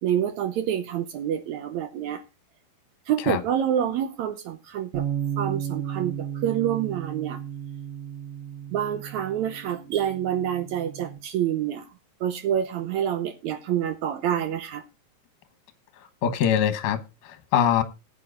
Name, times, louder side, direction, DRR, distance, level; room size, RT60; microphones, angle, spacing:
voice 1, 0.0-2.2 3.1-5.0 5.4-7.4 8.7-11.9 12.2-14.8, right 10 dB, 75° right, 1.7 m, -27 dB
Bass guitar, 4.9-11.2, right 9 dB, 55° right, 1.7 m, -34 dB
voice 2, 16.2-17.8, left 9 dB, 75° left, 2.6 m, -23 dB
19.0 x 8.5 x 2.5 m
omnidirectional pair, 4.0 m